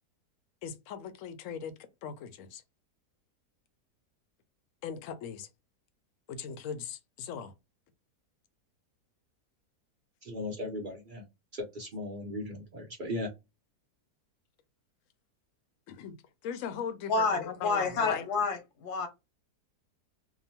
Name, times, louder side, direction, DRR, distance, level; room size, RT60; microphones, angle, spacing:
voice 1, 0.6-1.7 2.0-2.6 4.8-5.5 6.3-7.5 15.9-16.1 16.4-18.2, left 7 dB, 65° left, 0.8 m, -39 dB
voice 2, 10.2-11.3 11.5-13.3, left 1 dB, 70° right, 0.4 m, -37 dB
voice 3, 17.1-19.1, left 4 dB, 85° left, 1.3 m, -29 dB
2.8 x 2.1 x 2.7 m
omnidirectional pair, 1.7 m